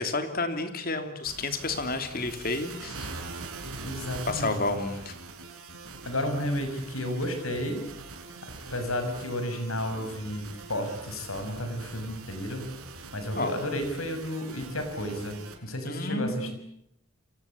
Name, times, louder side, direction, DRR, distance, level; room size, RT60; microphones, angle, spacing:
voice 1, 0.0-3.1 4.3-5.1 13.3-13.5 15.8-16.5, left 3 dB, 45° left, 8 dB, 3.1 m, -30 dB
sound 1, 1.3-15.5, right 3 dB, 90° right, 6.0 m, -43 dB
voice 2, 3.8-4.6 6.0-7.9 8.7-12.7 13.1-16.5, left 1 dB, 75° left, 7 dB, 6.5 m, -32 dB
29.5 x 23.5 x 8.6 m, 0.78 s
head